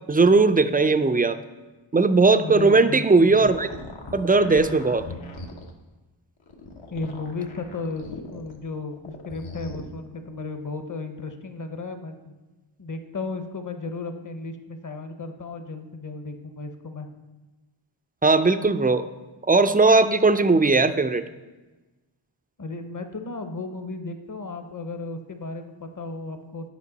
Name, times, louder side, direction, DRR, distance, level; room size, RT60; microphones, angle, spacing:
voice 1, 0.1-1.4 1.9-3.7 4.1-5.0 18.2-19.1 19.5-21.2, right 3 dB, 20° right, 11 dB, 0.3 m, -18 dB
voice 2, 2.4-3.5 6.9-12.4 12.8-17.1 22.6-26.7, left 3 dB, 40° left, 7 dB, 0.8 m, -34 dB
sound 1, 2.9-5.7 6.4-8.6 8.9-9.8, left 2 dB, 75° left, 1.0 m, -40 dB
8.3 x 5.2 x 4.0 m, 1.2 s
cardioid pair, 40°, 48 cm